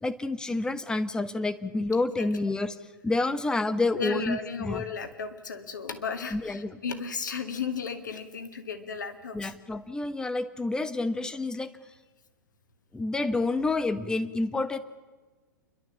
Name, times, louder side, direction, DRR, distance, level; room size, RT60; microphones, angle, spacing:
voice 1, 0.0-2.8 3.0-4.8 6.3-6.8 9.3-11.7 12.9-14.8, left 2 dB, 5° left, 11 dB, 0.9 m, -28 dB
voice 2, 3.9-9.6, left 5 dB, 65° left, 7 dB, 2.1 m, -34 dB
29.5 x 12.0 x 7.4 m, 1.3 s
figure-of-eight pair, 105°, 11 cm